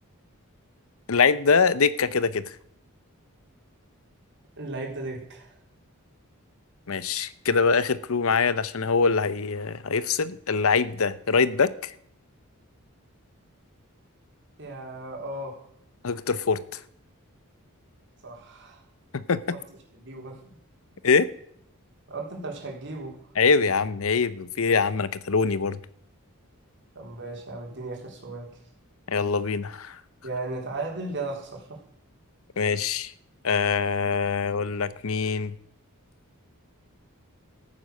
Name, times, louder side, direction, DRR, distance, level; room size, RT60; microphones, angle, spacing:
voice 1, 1.1-2.6 6.9-11.9 16.0-16.6 19.1-19.6 21.0-21.3 23.4-25.8 29.1-30.0 32.6-33.1 33.4-35.6, left 5 dB, 65° left, 16 dB, 0.7 m, -24 dB
voice 2, 4.6-5.6 14.6-15.6 18.2-18.8 19.5-19.6 19.9-20.6 22.1-23.2 26.9-28.6 30.2-31.8, right 2 dB, 55° right, 1 dB, 3.9 m, -36 dB
13.5 x 9.5 x 6.5 m, 0.69 s
head